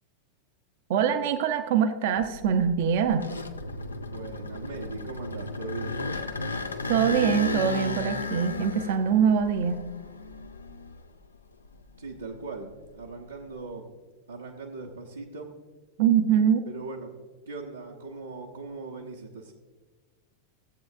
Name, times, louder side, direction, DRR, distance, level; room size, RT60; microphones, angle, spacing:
voice 1, 0.9-3.3 6.9-9.8 16.0-16.6, right 8 dB, 50° right, 8 dB, 0.6 m, -23 dB
sound 1, 2.2-11.2 11.7-13.5, left 3 dB, 75° left, 0.5 m, -34 dB
voice 2, 4.1-6.3 12.0-13.9 14.3-15.5 16.7-17.1 17.5-19.5, right 3 dB, 80° right, -4 dB, 1.0 m, -39 dB
16.5 x 7.9 x 2.5 m, 1.3 s
figure-of-eight pair, 90°, 0 cm